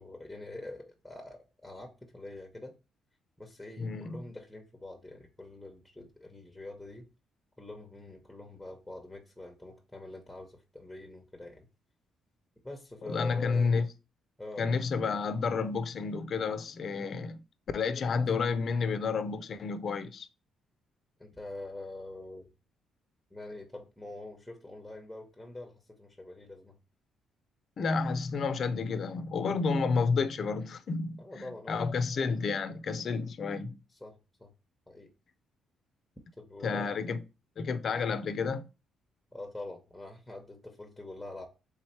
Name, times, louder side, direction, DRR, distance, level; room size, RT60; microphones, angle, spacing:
voice 1, 0.0-2.7 3.4-7.1 7.6-11.7 12.6-13.7 14.4-14.7 17.9-18.1 21.2-22.5 23.3-26.8 31.2-32.0 33.9-34.5 34.9-35.1 36.4-36.9 39.3-41.5, left 2 dB, 5° left, 0.8 m, -45 dB
voice 2, 3.8-4.2 13.1-13.9 14.6-17.4 17.7-20.3 27.8-33.8 36.6-37.2 37.6-38.7, left 4 dB, 55° left, 0.5 m, -30 dB
3.5 x 3.2 x 4.3 m
cardioid pair, 90°, 0 cm